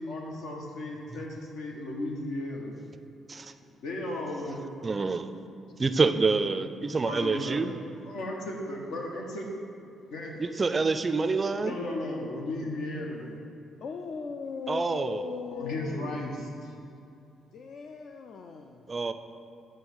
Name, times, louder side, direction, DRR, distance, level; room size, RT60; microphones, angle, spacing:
voice 1, 0.0-2.8 3.6-4.6 7.0-7.8 8.0-9.5 10.0-10.4 11.6-13.4 15.5-16.7, left 1 dB, 85° left, -1 dB, 1.1 m, -35 dB
voice 2, 4.8-5.3 5.8-7.7 10.4-11.8 14.7-15.3 18.9-19.1, right 4 dB, 30° right, 10 dB, 0.3 m, -27 dB
voice 3, 13.8-16.2 17.5-18.8, left 5 dB, 65° left, 4 dB, 0.4 m, -38 dB
8.9 x 3.2 x 6.3 m, 2.5 s
cardioid pair, 90°, 0 cm